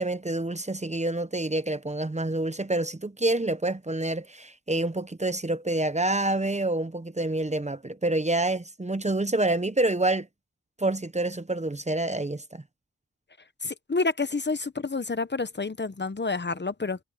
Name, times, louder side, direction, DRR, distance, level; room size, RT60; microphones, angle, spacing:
voice 1, 0.0-10.3 10.8-12.6, right 2 dB, 20° right, 0.8 m, -27 dB
voice 2, 13.6-17.0, left 3 dB, 35° left, 0.8 m, -29 dB
wide cardioid pair, 85°, 31 cm